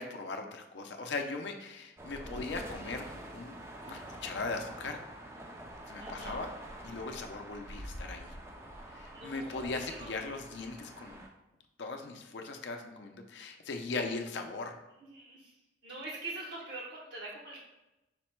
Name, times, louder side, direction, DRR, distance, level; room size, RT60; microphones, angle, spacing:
voice 1, 0.0-3.1 3.3-3.6 3.9-5.0 5.9-6.5 6.8-8.3 8.9-11.2 11.8-14.7, left 3 dB, 65° left, 4 dB, 0.5 m, -39 dB
sound 1, 2.0-11.3, right 1 dB, 15° right, 0.3 m, -46 dB
voice 2, 6.0-6.4 9.1-10.3 15.1-15.5 15.8-17.6, right 2 dB, 60° right, -5 dB, 0.7 m, -44 dB
5.0 x 2.1 x 4.3 m, 0.97 s
head